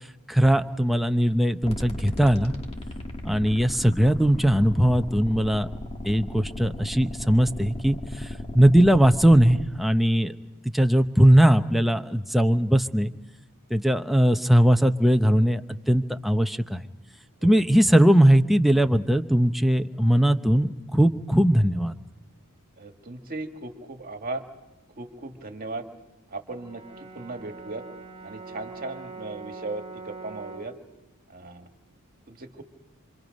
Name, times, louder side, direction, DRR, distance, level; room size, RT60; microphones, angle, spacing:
voice 1, 0.3-2.5 3.2-5.7 6.0-8.3 8.5-10.3 10.7-13.1 13.7-15.6 15.9-16.8 17.4-21.9, equal, ahead, 7 dB, 0.8 m, -20 dB
sound 1, 1.6-9.6, left 1 dB, 25° left, 2.0 m, -36 dB
voice 2, 22.8-24.4 25.0-25.9 26.3-27.8 28.2-30.7 31.3-31.7 32.3-32.6, right 2 dB, 40° right, 5 dB, 2.0 m, -37 dB
Brass instrument, 26.5-30.8, right 4 dB, 25° right, 3.1 m, -42 dB
27.0 x 26.5 x 5.3 m, 1.0 s
head